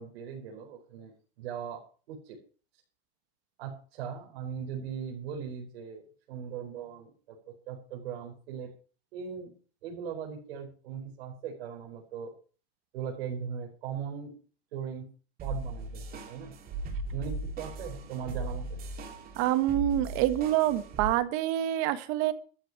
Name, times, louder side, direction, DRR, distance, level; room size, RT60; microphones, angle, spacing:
voice 1, 0.0-1.8 2.1-2.4 3.6-8.7 9.1-9.5 9.8-12.3 12.9-14.3 14.7-15.1 15.4-16.5 17.1-18.8, right 7 dB, 75° right, -1 dB, 5.0 m, -39 dB
sound 1, 15.4-21.1, right 2 dB, 30° right, 3.2 m, -38 dB
voice 2, 19.4-22.3, right 13 dB, 50° right, 11 dB, 1.7 m, -26 dB
14.0 x 6.6 x 9.5 m, 0.38 s
supercardioid pair, 145°, 31 cm